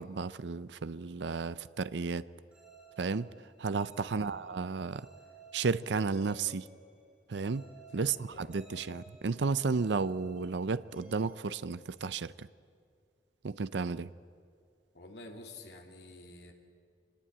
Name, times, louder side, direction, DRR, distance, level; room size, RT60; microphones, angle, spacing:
voice 1, 0.0-2.3 3.0-3.3 3.6-5.1 5.5-6.7 7.3-7.6 7.9-12.5 13.4-14.1, right 4 dB, 85° right, 0.6 m, -33 dB
sound 1, 2.5-12.3, right 3 dB, 5° right, 5.8 m, -57 dB
voice 2, 4.1-4.4 7.9-8.6 14.9-16.5, left 2 dB, 70° left, 2.7 m, -49 dB
25.5 x 20.5 x 8.8 m
head